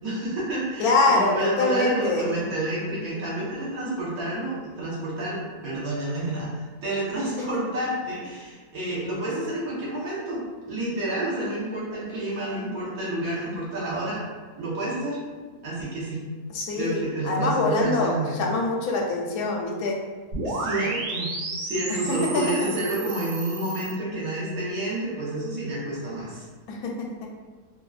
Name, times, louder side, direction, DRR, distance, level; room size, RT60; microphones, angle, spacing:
voice 1, 0.0-14.2 14.6-15.2 15.6-16.2 16.8-18.5 20.4-26.4, right 1 dB, 70° right, -8 dB, 1.4 m, -29 dB
voice 2, 0.8-2.3 7.4-7.6 16.5-17.0 17.2-20.0 21.9-22.4 26.7-27.3, left 2 dB, 80° left, 0 dB, 1.0 m, -24 dB
sound 1, 20.3-23.9, right 2 dB, 90° right, 1.2 m, -32 dB
3.4 x 2.1 x 2.3 m, 1.4 s
omnidirectional pair, 1.6 m